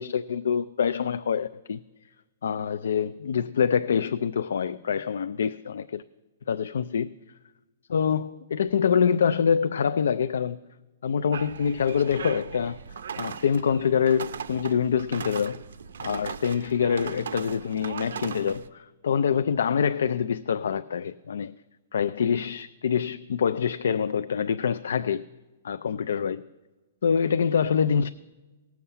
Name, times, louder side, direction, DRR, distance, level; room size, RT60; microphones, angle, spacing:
voice 1, 0.0-1.8 2.4-6.0 6.5-7.1 7.9-10.6 11.0-12.8 13.2-15.6 16.0-21.6 21.9-25.2 25.6-26.4 27.0-28.1, left 7 dB, 75° left, 0.3 m, -25 dB
sound 1, 11.3-18.7, right 7 dB, 80° right, 0.6 m, -38 dB
18.0 x 7.1 x 5.6 m
hypercardioid pair, 175°, 0 cm